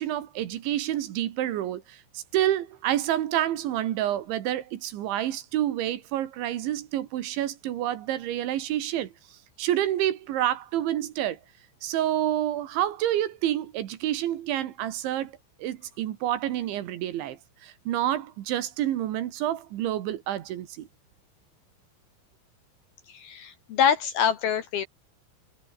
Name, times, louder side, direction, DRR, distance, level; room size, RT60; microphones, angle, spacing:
voice 1, 0.0-9.1 9.6-11.4 11.8-20.9, right 12 dB, 70° right, 3.8 m, -28 dB
voice 2, 23.1-24.9, left 8 dB, 65° left, 2.7 m, -25 dB
omnidirectional pair, 5.8 m